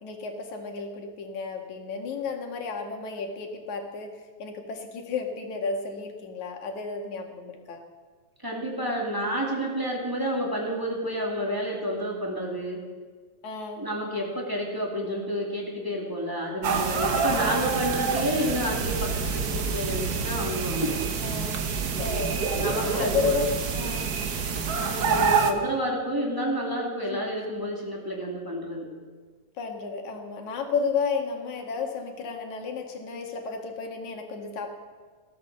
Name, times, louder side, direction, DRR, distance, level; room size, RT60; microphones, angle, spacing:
voice 1, 0.0-4.1 4.4-7.8 13.4-13.8 17.1-17.4 21.2-21.6 22.0-23.5 23.7-24.1 27.1-27.3 29.6-34.7, left 5 dB, 80° left, 3 dB, 3.2 m, -32 dB
voice 2, 8.4-12.8 13.8-21.0 22.5-23.4 24.8-28.9, equal, 10° right, -1 dB, 2.3 m, -30 dB
sound 1, 16.6-25.5, right 5 dB, 75° right, 0.8 m, -27 dB
16.5 x 13.0 x 6.7 m, 1.5 s
omnidirectional pair, 3.3 m